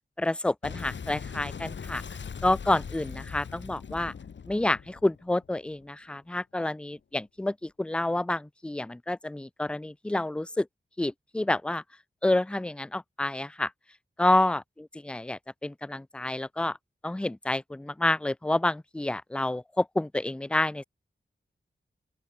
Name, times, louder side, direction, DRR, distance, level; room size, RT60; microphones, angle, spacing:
voice 1, 0.2-2.0 2.4-4.1 4.5-10.7 11.0-11.8 12.2-13.7 14.2-16.8 17.0-20.8, left 1 dB, 5° left, 0.3 m, -28 dB
Boom, 0.6-5.8, left 6 dB, 70° left, 1.1 m, -40 dB
open air
cardioid pair, 45°, 19 cm